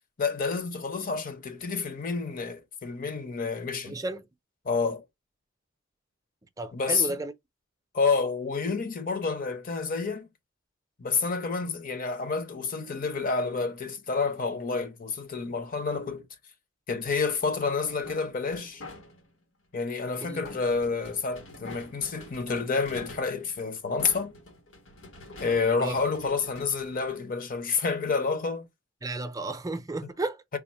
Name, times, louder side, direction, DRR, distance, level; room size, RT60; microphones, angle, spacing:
voice 1, 0.2-4.0 4.6-5.0 6.7-7.2 7.9-10.3 11.0-16.3 16.9-18.8 19.7-24.3 25.4-28.7, left 4 dB, 45° left, 0.7 m, -29 dB
voice 2, 3.8-4.3 6.6-7.3 20.2-20.4 25.8-26.0 29.0-30.4, right 2 dB, 20° right, 0.5 m, -33 dB
sound 1, 17.8-19.4 20.4-27.6, left 2 dB, 85° left, 1.2 m, -46 dB
3.5 x 2.0 x 4.2 m
head